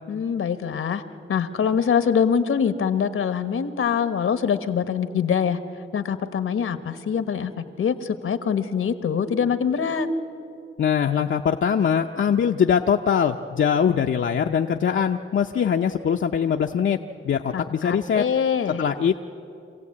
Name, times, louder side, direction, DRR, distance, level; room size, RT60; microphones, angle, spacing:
voice 1, 0.1-1.0 1.3-5.6 5.9-10.1 17.5-18.8, left 7 dB, 80° left, 10 dB, 1.2 m, -24 dB
voice 2, 10.8-17.0 17.2-18.2 18.8-19.2, left 7 dB, 65° left, 3 dB, 0.7 m, -22 dB
26.0 x 16.0 x 8.6 m, 2.7 s
cardioid pair, 75°, 21 cm